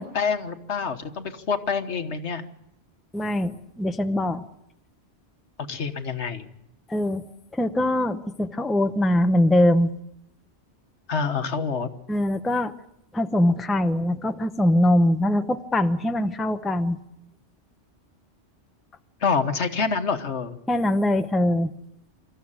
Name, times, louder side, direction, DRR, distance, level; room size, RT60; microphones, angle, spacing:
voice 1, 0.0-2.4 5.7-6.5 11.1-11.9 19.2-20.6, left 5 dB, 70° left, 9 dB, 1.5 m, -27 dB
voice 2, 3.1-4.4 6.9-7.2 7.5-9.9 12.1-12.7 13.1-17.0 20.7-21.7, left 1 dB, ahead, 8 dB, 0.7 m, -22 dB
25.5 x 14.0 x 8.8 m, 0.80 s
omnidirectional pair, 1.2 m